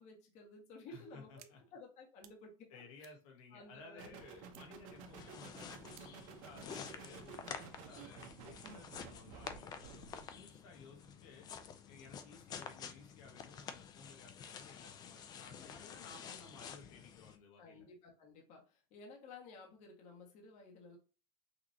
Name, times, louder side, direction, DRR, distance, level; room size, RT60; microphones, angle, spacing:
voice 1, 0.0-1.4 1.7-2.7 3.0-3.1 3.5-4.3 17.6-21.0, left 3 dB, 40° left, 0 dB, 1.6 m, -55 dB
voice 2, 0.9-1.6 2.7-11.5 11.8-17.9, left 4 dB, 75° left, 2 dB, 1.5 m, -57 dB
sound 1, 1.4-1.5 1.9-2.4 2.7-4.1 4.5-4.9 5.2-5.3 5.9-6.3, right 12 dB, 85° right, 0.7 m, -62 dB
sound 2, 4.0-10.3, right 7 dB, 65° right, 1.1 m, -53 dB
sound 3, 5.0-17.4, left 7 dB, 20° left, 0.4 m, -50 dB
5.9 x 3.0 x 2.8 m, 0.34 s
supercardioid pair, 170°, 18 cm